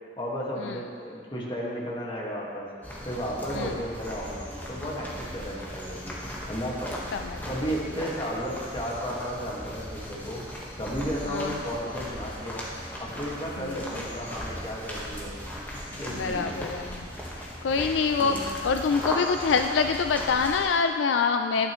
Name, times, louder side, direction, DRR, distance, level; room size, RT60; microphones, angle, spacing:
voice 1, 0.2-2.7 3.1-6.2 6.5-7.1 7.4-10.4 10.8-12.7 13.0-15.4 16.0-16.6 18.2-18.5, equal, 25° left, -4 dB, 1.7 m, -33 dB
sound 1, 2.8-20.7, equal, 10° left, 1.4 m, -37 dB
voice 2, 7.1-7.4 11.3-11.5 13.6-13.7 16.1-17.1 17.6-21.7, left 5 dB, 75° left, 7 dB, 0.4 m, -25 dB
12.0 x 10.0 x 3.1 m, 2.4 s
head